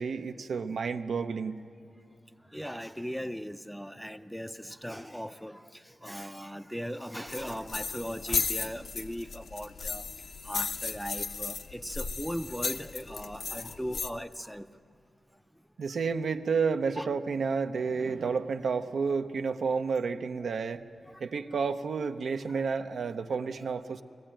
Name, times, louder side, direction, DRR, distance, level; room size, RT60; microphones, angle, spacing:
voice 1, 0.0-1.6 15.8-20.8 21.2-24.0, right 5 dB, 75° right, 8 dB, 0.6 m, -30 dB
voice 2, 2.5-10.1 10.4-14.7 17.0-17.1 20.4-20.5 21.1-21.2 21.5-21.6 22.5-22.7 23.6-23.8, equal, ahead, 11 dB, 0.4 m, -38 dB
sound 1, 7.3-14.1, left 5 dB, 70° left, 0.7 m, -35 dB
21.0 x 15.0 x 8.9 m, 2.5 s
wide cardioid pair, 120°, 0 cm